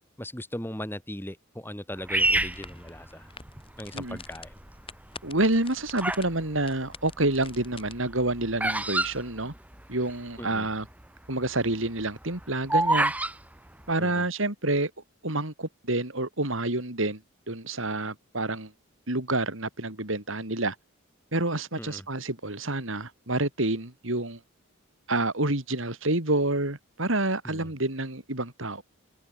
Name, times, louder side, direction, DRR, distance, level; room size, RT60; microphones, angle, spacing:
voice 1, 0.2-3.3 3.8-4.5 10.4-10.7 14.0-14.2 21.7-22.0 27.4-27.7, left 1 dB, 10° left, 7.1 m, -38 dB
sound 1, 2.1-7.9, left 3 dB, 25° left, 6.2 m, -46 dB
Bird vocalization bird call bird song, 2.1-3.6 4.2-4.7 5.4-6.3 6.6-10.1 10.4-10.5 10.6-11.0 11.4-13.3, right 2 dB, 5° right, 1.1 m, -27 dB
voice 2, 5.2-9.5 9.9-10.9 11.3-13.1 13.9-14.9 15.2-17.2 17.5-18.7 19.1-20.8 21.3-24.4 25.1-28.8, right 2 dB, 65° right, 3.9 m, -28 dB
head